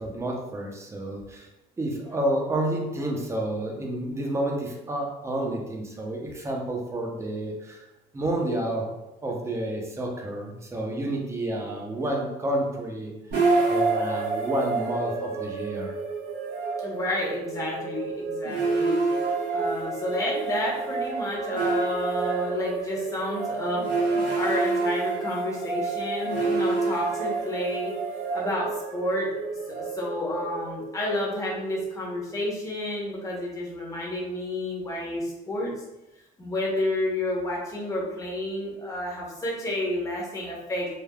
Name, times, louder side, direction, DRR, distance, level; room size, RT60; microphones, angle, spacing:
voice 1, 0.0-1.5 1.8-7.9 8.1-8.9 9.2-13.1 13.7-15.9, right 1 dB, 15° right, 0 dB, 0.6 m, -30 dB
sound 1, 13.3-32.4, right 3 dB, 85° right, 1.0 m, -28 dB
voice 2, 16.8-19.0 19.5-27.9 28.3-29.4 29.7-35.7 36.4-40.9, left 1 dB, 20° left, -4 dB, 0.9 m, -30 dB
3.3 x 2.2 x 2.3 m, 0.94 s
cardioid pair, 110°, 17 cm